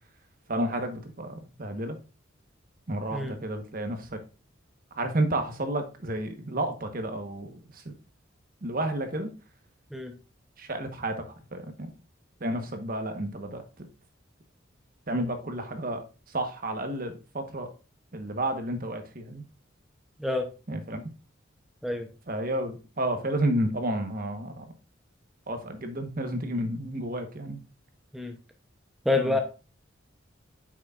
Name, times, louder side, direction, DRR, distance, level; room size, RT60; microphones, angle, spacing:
voice 1, 0.5-2.0 2.9-4.2 5.0-7.6 7.9-8.0 8.6-9.3 10.6-11.1 11.5-11.9 12.4-13.6 15.1-16.0 16.3-17.7 18.1-19.4 20.7-21.0 22.3-24.6 25.5-27.6 29.2-29.4, right 1 dB, 45° right, 1.1 m, -31 dB
voice 2, 29.1-29.4, left 2 dB, ahead, 0.7 m, -27 dB
8.4 x 6.2 x 2.4 m
head